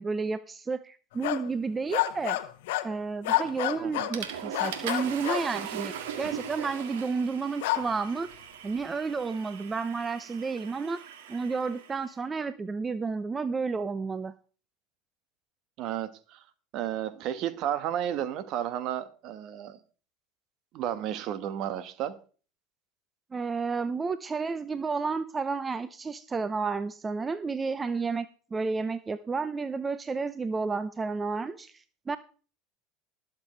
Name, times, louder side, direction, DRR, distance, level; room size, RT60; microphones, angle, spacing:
voice 1, 0.0-2.4 2.8-8.3 8.6-11.0 11.3-14.3 23.3-32.2, right 4 dB, 25° right, 0.7 m, -31 dB
sound 1, 1.1-1.5 1.9-2.9 3.2-4.2 4.5-5.5 7.6-7.9, left 15 dB, 75° left, 1.0 m, -29 dB
Water / Toilet flush, 3.5-3.7 4.1-12.0, right 8 dB, 75° right, 1.9 m, -40 dB
voice 2, 15.8-16.4 16.7-19.8 20.7-22.1, right 10 dB, 55° right, 1.4 m, -32 dB
20.0 x 7.4 x 3.3 m
hypercardioid pair, 80°, 0 cm